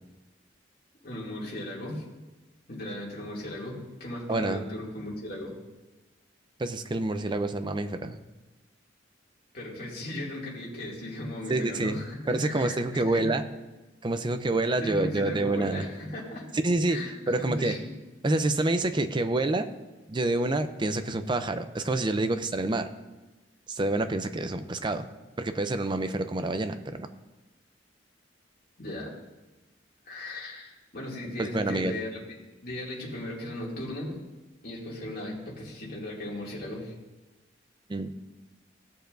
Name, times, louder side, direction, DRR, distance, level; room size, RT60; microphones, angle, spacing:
voice 1, 1.0-2.0 2.7-5.5 9.5-13.3 14.8-16.5 16.9-17.8 28.8-29.1 30.1-32.2 32.6-34.2 34.6-36.9, left 1 dB, 55° left, -5 dB, 2.5 m, -37 dB
voice 2, 4.3-4.6 6.6-8.2 11.5-12.0 12.3-13.4 14.0-15.8 16.6-17.0 17.3-17.8 18.2-19.7 20.1-22.9 23.7-25.1 25.4-27.1 31.4-32.0 37.9-38.1, right 2 dB, 25° right, 9 dB, 0.5 m, -27 dB
17.0 x 6.7 x 2.6 m, 1.1 s
head